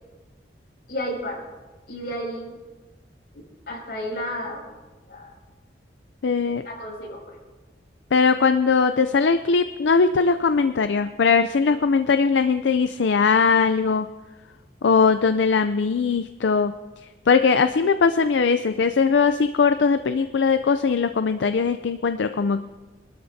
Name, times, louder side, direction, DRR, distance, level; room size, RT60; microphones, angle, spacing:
voice 1, 0.9-1.4 1.9-2.6 3.3-4.7 5.1-5.3 6.6-7.4, equal, 60° left, -3 dB, 5.8 m, -32 dB
voice 2, 6.2-6.6 8.1-14.1 14.8-16.7 17.3-22.7, left 5 dB, 80° left, 9 dB, 0.4 m, -20 dB
26.0 x 13.0 x 2.7 m, 1.2 s
head